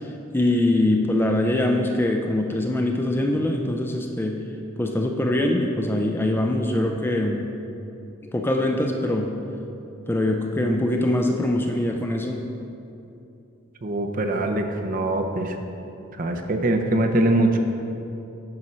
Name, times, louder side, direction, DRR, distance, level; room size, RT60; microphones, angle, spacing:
voice 1, 0.3-4.3 4.8-7.4 8.3-9.3 10.1-12.4, left 1 dB, 10° left, 2 dB, 0.4 m, -23 dB
voice 2, 13.8-15.6 16.2-17.6, right 1 dB, 40° right, 4 dB, 0.6 m, -23 dB
9.5 x 4.3 x 6.1 m, 2.8 s
head